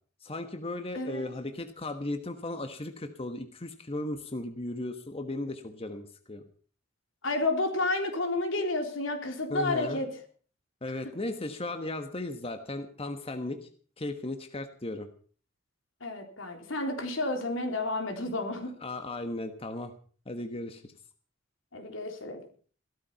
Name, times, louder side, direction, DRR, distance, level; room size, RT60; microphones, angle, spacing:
voice 1, 0.2-6.4 9.5-10.0 10.8-13.7 14.0-15.1 18.8-19.9 20.3-20.9, left 2 dB, 30° left, 7 dB, 1.3 m, -36 dB
voice 2, 0.9-1.3 7.2-10.1 16.0-18.7 21.7-22.4, left 2 dB, 80° left, 4 dB, 3.6 m, -31 dB
16.0 x 13.0 x 5.8 m, 0.43 s
head